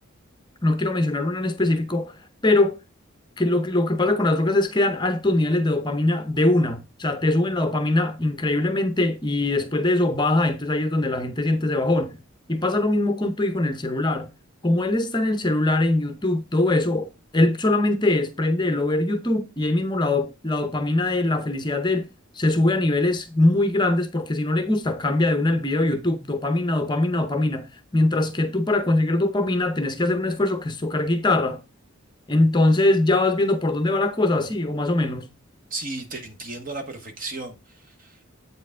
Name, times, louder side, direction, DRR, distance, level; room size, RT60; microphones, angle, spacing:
voice 1, 0.6-2.2 2.4-2.8 3.4-12.2 12.5-14.3 14.6-22.1 22.3-27.7 27.9-31.6 32.3-35.3, left 2 dB, 20° left, 0.7 m, -22 dB
voice 2, 35.7-38.2, right 2 dB, 45° right, 1.1 m, -35 dB
8.2 x 4.6 x 3.6 m
head